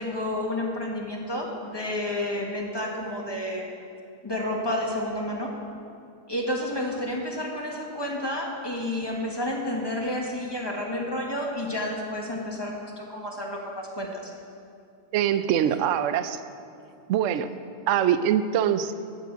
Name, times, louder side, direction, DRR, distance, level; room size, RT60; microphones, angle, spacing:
voice 1, 0.0-3.7 4.2-5.5 6.3-14.3, left 1 dB, 15° left, -1 dB, 1.7 m, -30 dB
voice 2, 15.1-16.4 17.1-17.5 17.9-18.9, right 9 dB, 65° right, 12 dB, 0.8 m, -23 dB
14.0 x 9.4 x 6.8 m, 2.5 s
omnidirectional pair, 1.6 m